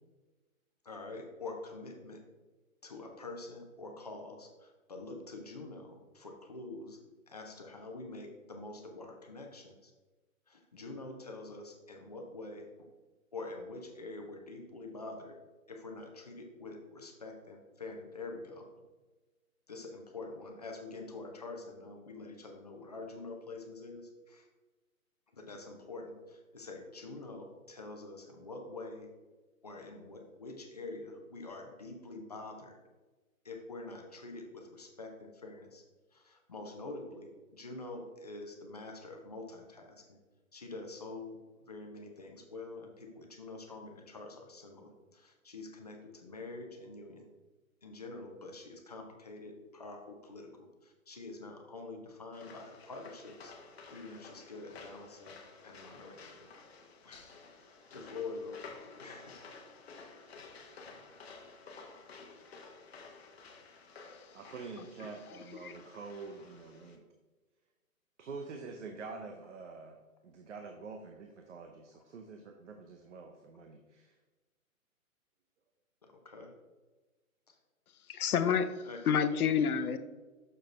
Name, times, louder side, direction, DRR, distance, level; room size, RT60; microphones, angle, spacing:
voice 1, 0.8-2.2 2.8-7.0 7.3-9.9 10.5-12.9 13.3-15.3 15.7-18.7 19.7-24.5 25.3-29.1 29.6-32.7 33.4-35.8 36.1-40.2 40.5-41.4 41.7-47.3 47.8-53.5 53.9-55.4 55.6-56.3 57.0-57.3 57.9-59.3 60.8-61.1 76.0-76.5 78.8-79.0, left 3 dB, 30° left, 2 dB, 0.6 m, -46 dB
sound 1, 52.3-67.0, left 4 dB, 45° left, 0.9 m, -53 dB
voice 2, 64.3-67.0 68.2-70.0 70.2-74.1, right 4 dB, 55° right, 4 dB, 0.8 m, -46 dB
voice 3, 78.1-78.7 79.1-80.0, left 7 dB, 85° left, 11 dB, 0.8 m, -28 dB
6.7 x 6.2 x 3.2 m, 1.2 s
hypercardioid pair, 175°, 43 cm